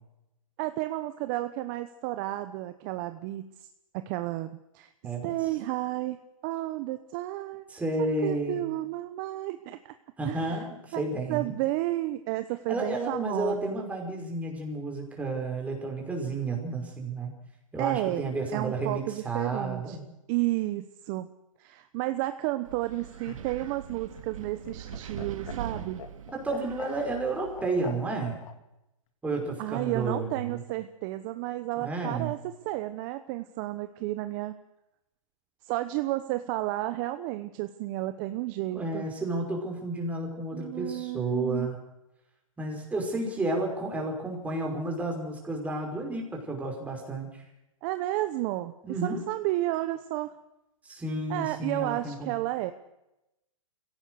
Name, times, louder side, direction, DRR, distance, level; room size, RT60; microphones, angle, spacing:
voice 1, 0.6-3.7 3.9-4.9 5.2-6.2 6.4-7.7 8.0-9.9 10.2-10.7 10.9-11.0 11.3-13.9 17.8-20.0 20.3-21.3 21.6-26.0 29.6-34.5 35.6-39.1 40.5-41.7 47.8-48.7 49.0-50.3 51.3-52.7, right 16 dB, 35° right, 10 dB, 1.0 m, -32 dB
voice 2, 7.7-8.6 10.2-11.6 12.7-17.3 17.7-20.0 26.3-28.4 29.2-30.6 31.8-32.3 38.7-41.8 42.6-47.4 48.8-49.2 50.8-52.3, right 2 dB, 10° right, 1 dB, 5.4 m, -31 dB
Wind, 22.6-27.9, right 8 dB, 75° right, 2.3 m, -42 dB
Laughter, 22.8-28.5 29.8-30.5, left 8 dB, 70° left, 2.5 m, -44 dB
24.0 x 17.0 x 6.5 m, 0.91 s
hypercardioid pair, 145°, 17 cm